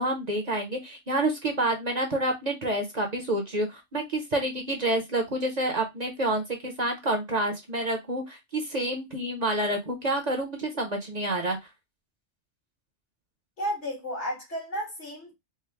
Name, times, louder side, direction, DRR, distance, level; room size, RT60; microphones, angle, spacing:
voice 1, 0.0-11.6, right 1 dB, 40° right, 0.8 m, -28 dB
voice 2, 13.6-15.3, equal, 75° left, 2.3 m, -33 dB
4.4 x 2.1 x 3.3 m
omnidirectional pair, 1.2 m